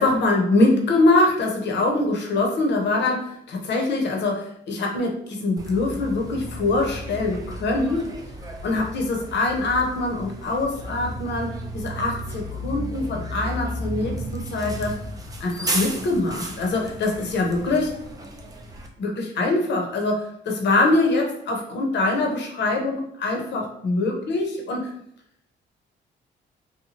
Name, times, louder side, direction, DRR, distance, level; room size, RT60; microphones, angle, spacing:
voice 1, 0.0-8.1 8.6-15.0 15.4-18.0 19.0-24.9, left 2 dB, 60° left, 1 dB, 0.8 m, -23 dB
Bus, 5.6-18.9, equal, 20° right, 0.5 m, -34 dB
2.8 x 2.2 x 2.8 m, 0.70 s
cardioid pair, 90°, 20 cm